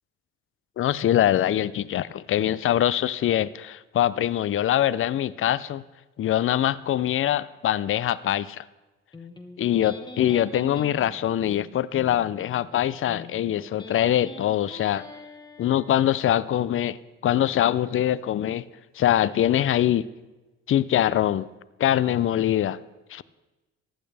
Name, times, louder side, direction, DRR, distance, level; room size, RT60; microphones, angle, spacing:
voice 1, 0.8-5.8 6.2-8.6 9.6-15.0 15.6-17.0 17.2-18.6 19.0-20.0 20.7-21.5 21.8-22.8 23.1-23.2, left 11 dB, 45° left, 17 dB, 0.4 m, -23 dB
Electric guitar, 9.1-16.1, left 3 dB, 15° left, 1.3 m, -43 dB
15.0 x 11.0 x 3.4 m, 1.1 s
cardioid pair, 90°, 30 cm